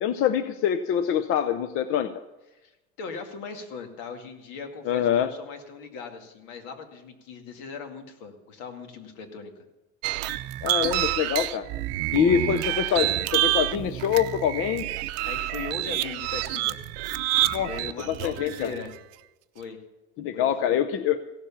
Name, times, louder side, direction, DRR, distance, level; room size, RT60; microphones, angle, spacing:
voice 1, 0.0-2.1 4.9-5.3 10.6-11.7 12.1-14.9 17.5-17.7 18.1-18.7 20.2-21.2, left 9 dB, 45° left, 10 dB, 0.7 m, -25 dB
voice 2, 2.5-9.5 12.2-12.6 15.0-16.8 17.4-18.9 19.5-19.8 20.3-20.8, left 5 dB, 80° left, 5 dB, 2.2 m, -39 dB
sound 1, 10.0-18.9, right 16 dB, 60° right, 0.7 m, -28 dB
16.5 x 7.3 x 7.1 m, 1.0 s
cardioid pair, 160°, 29 cm